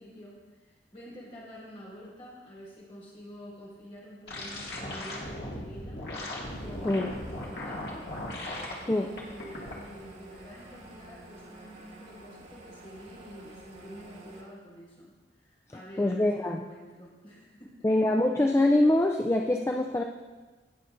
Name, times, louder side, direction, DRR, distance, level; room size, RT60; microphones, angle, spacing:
voice 1, 0.0-6.0 6.6-8.0 8.8-17.9, equal, 35° left, -7 dB, 3.5 m, -48 dB
sound 1, 4.3-8.7 9.2-9.7, left 1 dB, 60° left, 1.9 m, -37 dB
sound 2, 6.4-14.4, right 1 dB, 80° right, 2.1 m, -50 dB
voice 2, 15.7-16.6 17.8-20.0, left 1 dB, 15° left, 2 dB, 0.3 m, -24 dB
18.0 x 6.8 x 2.6 m, 1.3 s
head